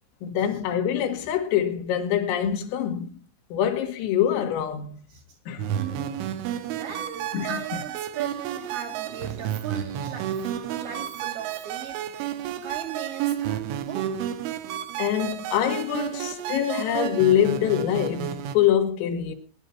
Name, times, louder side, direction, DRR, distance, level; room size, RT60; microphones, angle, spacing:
voice 1, 0.2-3.2 3.5-5.0 5.5-5.7 7.3-7.8 15.0-19.3, left 10 dB, 85° left, 4.3 m, -24 dB
sound 1, 5.6-18.6, right 11 dB, 80° right, 3.3 m, -31 dB
voice 2, 5.7-12.0 12.6-14.8, right 7 dB, 60° right, 3.1 m, -37 dB
20.0 x 10.5 x 4.2 m
omnidirectional pair, 5.8 m